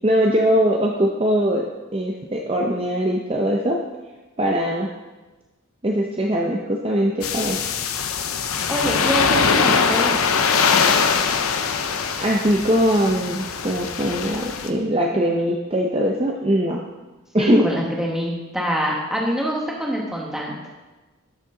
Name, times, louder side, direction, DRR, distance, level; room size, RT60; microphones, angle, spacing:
voice 1, 0.0-1.7 1.9-3.8 4.4-4.9 5.8-7.6 12.2-16.8 17.3-17.7, equal, 25° right, 0 dB, 0.6 m, -21 dB
sound 1, 7.2-14.7, left 5 dB, 85° left, 0.7 m, -22 dB
voice 2, 8.7-10.2 17.4-20.8, equal, ahead, -2 dB, 1.4 m, -25 dB
12.5 x 6.5 x 3.8 m, 1.2 s
head